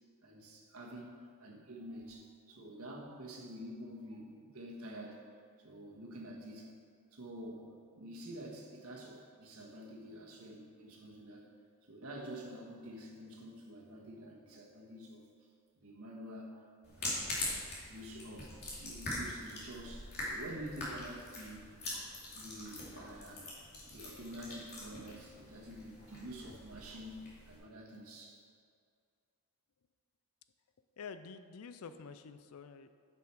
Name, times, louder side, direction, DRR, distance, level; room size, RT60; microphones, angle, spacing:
voice 1, 0.2-5.2 5.6-6.8 7.1-11.5 11.8-15.3 15.7-16.6 16.9-17.5 17.9-21.7 22.3-28.4, equal, 75° right, -1 dB, 1.6 m, -48 dB
sound 1, 16.8-27.6, left 1 dB, 50° left, 2.7 m, -43 dB
voice 2, 31.0-32.9, left 5 dB, 70° left, 11 dB, 0.5 m, -48 dB
10.5 x 6.1 x 4.7 m, 2.2 s
head